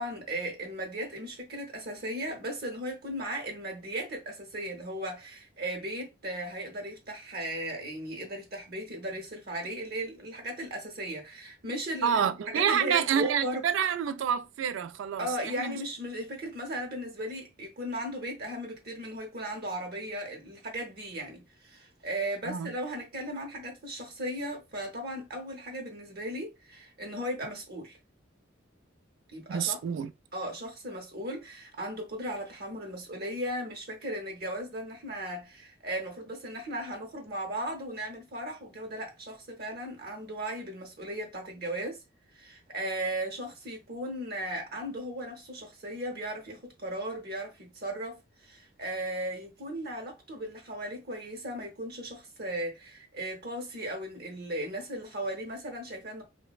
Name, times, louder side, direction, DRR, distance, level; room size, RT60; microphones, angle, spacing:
voice 1, 0.0-12.2 12.5-13.6 15.2-28.0 29.3-29.8 30.3-42.0 42.3-56.2, right 1 dB, 50° right, 0.7 m, -36 dB
voice 2, 12.0-15.3 15.6-15.8 22.5-22.7 29.5-30.1, right 8 dB, 70° right, 0.3 m, -28 dB
3.2 x 2.1 x 2.3 m
head